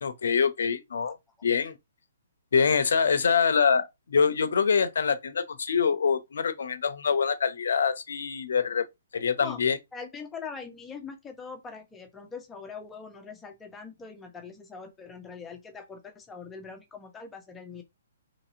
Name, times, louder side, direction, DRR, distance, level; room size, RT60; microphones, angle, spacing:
voice 1, 0.0-1.2 1.4-1.8 2.5-8.9 9.1-9.8, left 6 dB, 75° left, 0.6 m, -25 dB
voice 2, 9.9-17.8, left 5 dB, 10° left, 0.7 m, -42 dB
3.0 x 2.7 x 2.5 m
hypercardioid pair, 140°, 0 cm